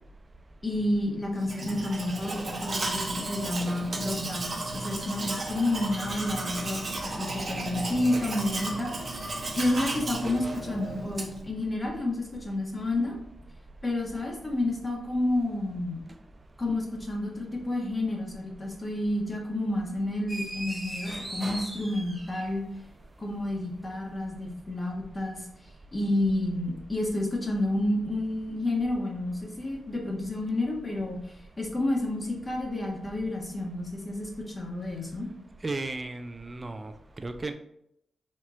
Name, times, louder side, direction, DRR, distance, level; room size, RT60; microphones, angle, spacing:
voice 1, 0.6-9.2 9.6-13.1 13.8-16.0 16.6-22.6 23.2-25.4 25.9-34.3 34.5-35.3, left 1 dB, 30° left, -1 dB, 1.4 m, -30 dB
Domestic sounds home sounds, 1.4-11.5, right 2 dB, 50° right, 1.1 m, -34 dB
sound 1, 20.3-22.8, right 1 dB, 5° right, 1.5 m, -38 dB
voice 2, 35.6-37.5, right 2 dB, 35° right, 8 dB, 0.4 m, -35 dB
4.4 x 2.9 x 3.8 m, 0.77 s
supercardioid pair, 45°, 0 cm